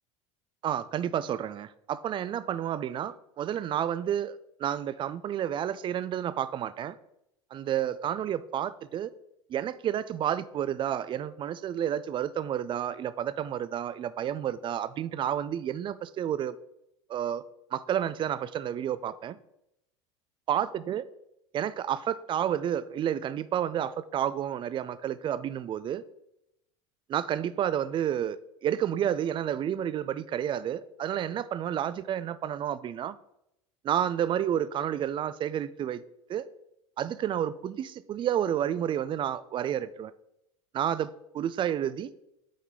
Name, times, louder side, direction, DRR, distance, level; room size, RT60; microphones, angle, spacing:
voice 1, 0.6-7.0 7.5-9.1 9.5-16.6 17.1-17.4 17.7-19.4 20.5-21.0 21.5-26.0 27.1-33.2 33.8-36.0 36.3-36.5 37.0-40.1 40.7-42.1, right 10 dB, 30° right, 0.4 m, -30 dB
8.3 x 4.2 x 3.7 m
hypercardioid pair, 80°, 16 cm